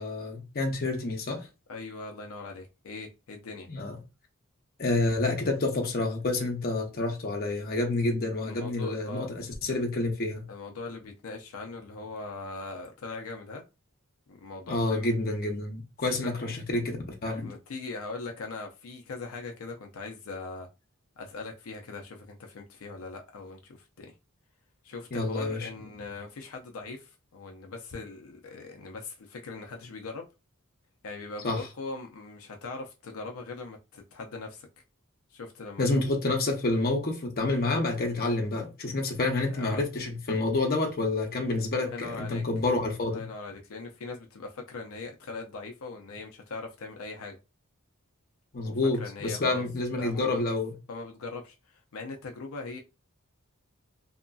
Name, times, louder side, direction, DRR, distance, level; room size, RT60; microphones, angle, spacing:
voice 1, 0.0-1.5 3.7-4.0 4.8-10.5 14.7-17.0 17.2-17.5 25.1-25.7 31.4-31.6 35.8-43.2 48.5-50.7, left 2 dB, 45° left, 0.7 m, -28 dB
voice 2, 1.7-3.7 8.4-9.3 10.5-13.6 14.3-15.1 16.2-16.6 17.3-20.7 21.2-24.1 24.8-30.3 31.0-34.7 35.3-35.9 39.5-39.8 41.7-42.4 43.0-47.4 48.6-49.6 49.9-50.4 50.9-52.8, left 3 dB, 90° left, 0.5 m, -40 dB
2.8 x 2.5 x 2.3 m
head